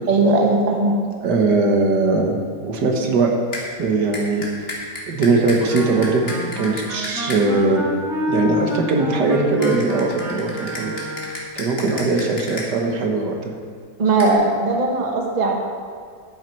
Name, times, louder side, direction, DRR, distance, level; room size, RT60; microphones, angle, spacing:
voice 1, 0.1-1.0 14.0-15.5, right 3 dB, 30° right, 1 dB, 1.1 m, -18 dB
voice 2, 1.2-3.3 3.8-4.4 5.1-7.8 8.3-10.9 11.6-13.5, right 3 dB, 80° right, 2 dB, 1.8 m, -20 dB
sound 1, 3.5-3.6 4.1-7.4 9.6-12.7 14.2-14.3, left 2 dB, 35° left, 2.0 m, -32 dB
Wind instrument woodwind instrument, 5.6-11.4, equal, ahead, 2.1 m, -28 dB
10.5 x 9.3 x 4.5 m, 2.1 s
omnidirectional pair, 1.8 m